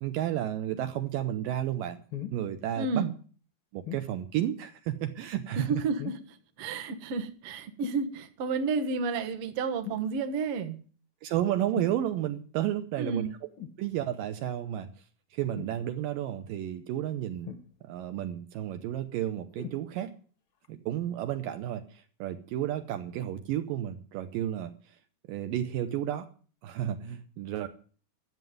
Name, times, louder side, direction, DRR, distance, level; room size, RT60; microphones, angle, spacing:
voice 1, 0.0-2.0 2.3-3.0 3.7-5.8 11.2-13.3 13.8-14.9 15.3-17.5 17.8-20.1 20.7-24.7 25.3-26.3 26.6-27.7, right 11 dB, 75° right, 8 dB, 2.3 m, -32 dB
sound 1, 2.1-2.4 3.9-4.1 6.0-6.4 7.8-8.1 9.8-10.1 11.7-12.0 13.6-13.8 15.5-15.8 17.5-18.0 19.6-19.8 20.6-20.7, left 9 dB, 75° left, 1.2 m, -40 dB
voice 2, 2.8-3.1 5.6-10.8 13.0-13.3, right 4 dB, 55° right, 6 dB, 1.6 m, -31 dB
12.0 x 7.5 x 9.2 m, 0.42 s
omnidirectional pair, 4.4 m